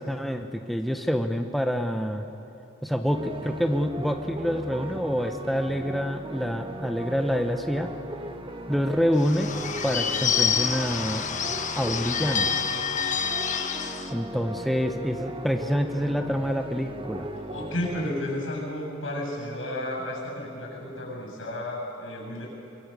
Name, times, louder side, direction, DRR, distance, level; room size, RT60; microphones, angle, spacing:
voice 1, 0.0-2.3 2.8-7.9 8.7-9.5 9.8-11.2 11.7-12.5 14.1-17.3, equal, ahead, 5 dB, 0.8 m, -27 dB
sound 1, 3.1-18.1, right 1 dB, 25° right, 1.3 m, -38 dB
Bird / Bell, 9.1-14.1, left 7 dB, 40° left, 1.2 m, -28 dB
voice 2, 17.3-22.5, left 1 dB, 70° left, -1 dB, 7.4 m, -32 dB
24.5 x 23.0 x 6.8 m, 3.0 s
head